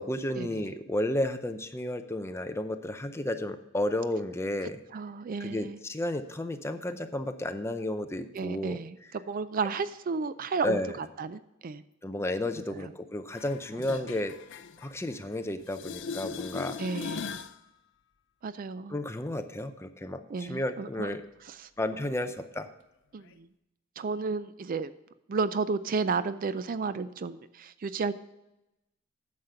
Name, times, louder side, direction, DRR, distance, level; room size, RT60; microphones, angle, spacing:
voice 1, 0.0-4.8 5.4-9.1 10.6-11.0 12.0-14.4 14.8-16.8 18.9-21.2 21.8-22.7, left 1 dB, 15° left, 8 dB, 0.6 m, -32 dB
voice 2, 4.9-5.8 8.3-9.0 9.3-11.8 12.8-12.9 13.9-14.0 16.8-17.3 18.4-19.0 20.3-21.1 21.5-21.7 23.1-23.5 24.0-24.9 25.3-28.1, right 4 dB, 40° right, 14 dB, 0.4 m, -32 dB
sound 1, 13.3-15.4 15.7-17.6 23.3-23.4, left 5 dB, 60° left, 0.5 m, -39 dB
9.5 x 6.6 x 5.6 m, 0.92 s
head